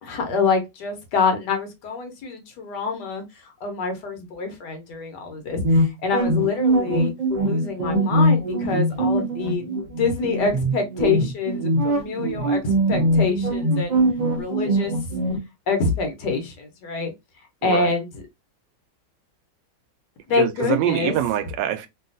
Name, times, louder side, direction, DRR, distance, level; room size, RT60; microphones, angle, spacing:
voice 1, 0.0-3.2 3.6-7.1 7.4-9.6 10.0-14.0 14.4-14.9 15.7-17.1 17.6-18.2 20.3-21.2, left 4 dB, 75° left, 1.4 m, -26 dB
sound 1, 5.6-15.4, right 1 dB, 45° right, 0.6 m, -22 dB
voice 2, 17.6-17.9 20.4-21.9, right 11 dB, 85° right, 1.2 m, -24 dB
3.3 x 2.3 x 2.5 m
omnidirectional pair, 1.9 m